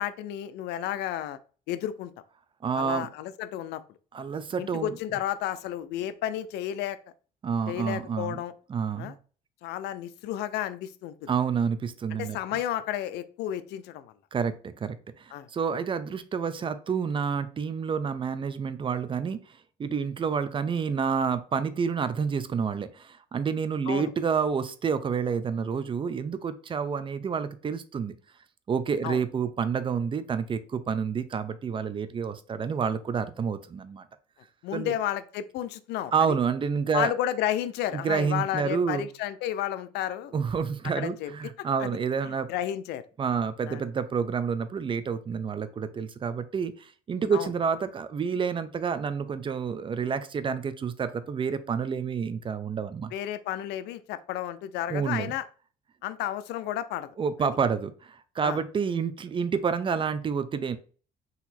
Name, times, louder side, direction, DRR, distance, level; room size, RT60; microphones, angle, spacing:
voice 1, 0.0-1.4 1.7-2.1 2.7-3.8 4.6-7.0 7.7-8.5 9.0-9.1 9.6-11.3 12.1-14.1 15.3-15.5 23.9-24.1 29.0-29.2 34.6-36.1 36.9-40.3 41.0-41.3 41.8-42.0 42.2-43.0 43.7-43.8 47.3-47.5 53.1-55.4 56.0-57.1 57.4-57.5 58.4-58.6, left 12 dB, 80° left, 13 dB, 0.5 m, -32 dB
voice 2, 2.6-3.1 4.1-5.0 7.4-8.4 8.7-9.1 11.3-12.4 14.3-19.4 19.8-28.1 28.7-34.0 34.7-34.9 36.1-37.1 37.9-39.1 40.3-42.5 43.2-53.1 54.9-55.3 57.2-60.8, right 6 dB, 30° right, 12 dB, 0.5 m, -29 dB
4.0 x 2.9 x 4.2 m, 0.39 s
cardioid pair, 110°, 17 cm